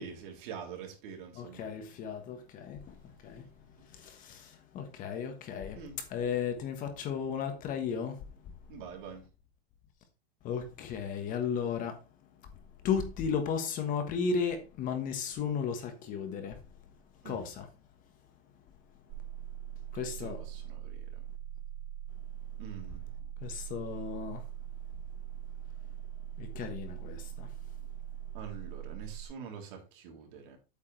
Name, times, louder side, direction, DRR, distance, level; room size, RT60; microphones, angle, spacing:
voice 1, 0.0-1.7 5.7-6.0 8.7-9.2 17.2-17.4 20.2-21.2 22.6-23.0 28.3-30.6, right 6 dB, 55° right, 3.4 m, -45 dB
voice 2, 1.3-3.5 3.8-8.5 10.4-12.0 12.4-12.5 12.8-16.6 17.2-17.7 19.9-20.4 22.9-23.0 23.4-24.5 26.4-27.7, left 6 dB, 25° left, 1.3 m, -35 dB
sound 1, 19.1-29.2, right 11 dB, 35° right, 0.8 m, -42 dB
8.5 x 8.3 x 3.3 m
supercardioid pair, 165°, 31 cm